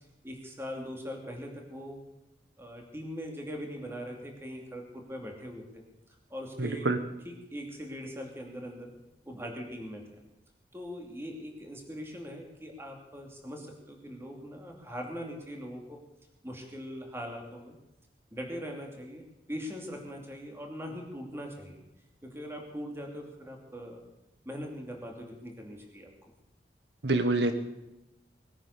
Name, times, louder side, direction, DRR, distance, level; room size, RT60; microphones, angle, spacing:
voice 1, 0.2-2.0 2.6-5.8 6.3-6.9 7.2-8.9 9.3-10.0 10.7-16.0 16.4-17.7 18.3-21.8 22.2-24.0 24.4-26.1, equal, 15° right, 1 dB, 2.7 m, -41 dB
voice 2, 6.6-7.0 27.0-27.5, right 2 dB, 75° right, 9 dB, 1.1 m, -26 dB
20.5 x 9.8 x 6.7 m, 0.92 s
head